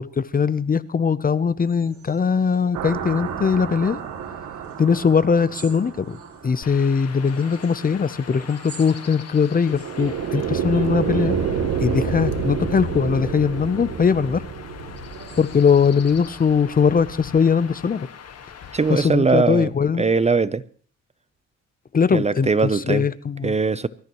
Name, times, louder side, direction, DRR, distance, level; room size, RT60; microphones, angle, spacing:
voice 1, 0.0-4.0 4.8-6.2 6.4-11.3 11.8-14.4 15.4-18.1 18.9-20.1 21.9-23.5, left 6 dB, 30° left, 0.7 m, -20 dB
sound 1, 1.6-15.9, right 4 dB, 45° right, 6.4 m, -48 dB
sound 2, 2.7-6.7 9.7-16.8, right 7 dB, 80° right, 2.5 m, -29 dB
Chirp tweet / Wind / Stream, 6.6-19.1, left 7 dB, 55° left, 1.7 m, -40 dB
voice 2, 18.7-19.7 20.0-20.6 22.1-23.0 23.4-23.9, right 4 dB, 20° right, 0.6 m, -20 dB
24.0 x 13.5 x 3.1 m
cardioid pair, 90°, 30 cm